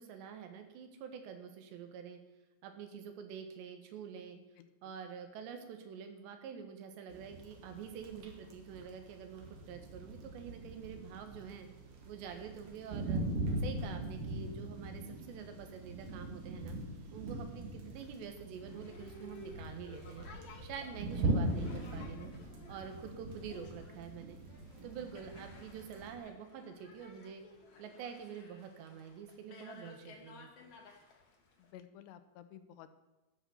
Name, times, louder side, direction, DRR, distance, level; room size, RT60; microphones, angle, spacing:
voice 1, 0.0-2.2 2.6-4.4 4.8-11.7 12.1-13.2 13.6-16.8 17.1-20.3 20.6-22.3 22.7-24.4 24.8-27.4 27.8-30.5, right 7 dB, 80° right, 7 dB, 3.7 m, -47 dB
voice 2, 4.6-5.0 31.6-32.9, left 10 dB, 80° left, 11 dB, 3.0 m, -54 dB
sound 1, 7.1-26.2, right 1 dB, 55° right, 3.2 m, -41 dB
Boat Water vehicle, 18.6-31.7, left 3 dB, 45° left, 2.4 m, -56 dB
13.0 x 7.9 x 7.1 m, 1.1 s
omnidirectional pair, 5.0 m